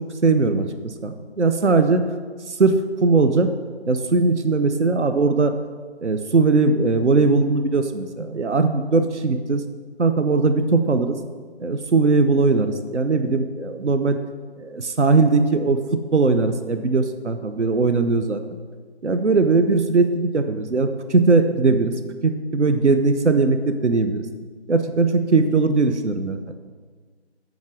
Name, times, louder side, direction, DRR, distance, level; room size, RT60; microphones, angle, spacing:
voice 1, 0.2-2.0 2.5-3.5 3.9-5.5 6.0-9.6 10.0-11.2 11.6-14.2 14.6-15.8 16.1-18.4 19.0-21.9 22.2-24.3 24.7-26.4, right 3 dB, 80° right, 8 dB, 0.8 m, -19 dB
7.3 x 6.1 x 7.5 m, 1.5 s
figure-of-eight pair, 155°, 34 cm